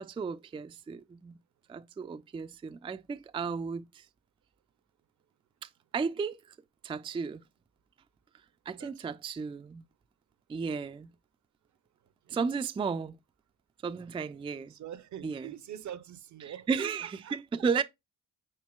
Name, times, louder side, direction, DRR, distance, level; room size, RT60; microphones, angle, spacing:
voice 1, 0.0-1.4 1.7-4.0 5.6-6.4 6.8-7.4 8.7-9.9 10.5-11.1 12.3-13.2 13.8-14.7 15.2-15.5 16.4-17.8, right 5 dB, 15° right, 0.3 m, -34 dB
voice 2, 8.8-9.1 12.3-12.4 14.7-17.4, right 10 dB, 60° right, 0.6 m, -44 dB
5.2 x 4.4 x 2.2 m
supercardioid pair, 45°, 32 cm